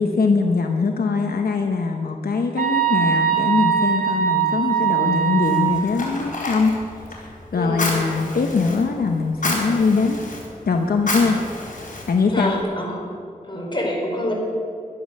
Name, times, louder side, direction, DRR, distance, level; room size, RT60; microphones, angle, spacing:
voice 1, 0.0-6.7 7.1-10.2 10.7-11.4 12.1-12.5, left 4 dB, 85° left, 3 dB, 0.9 m, -22 dB
sound 1, 2.6-5.8, right 8 dB, 65° right, 1.7 m, -21 dB
Fire, 5.4-12.6, left 2 dB, 60° left, 4.0 m, -31 dB
voice 2, 7.5-7.9 12.3-13.1 13.4-14.3, left 1 dB, 30° left, -1 dB, 4.2 m, -26 dB
12.0 x 11.5 x 6.5 m, 2.3 s
wide cardioid pair, 65°, 15 cm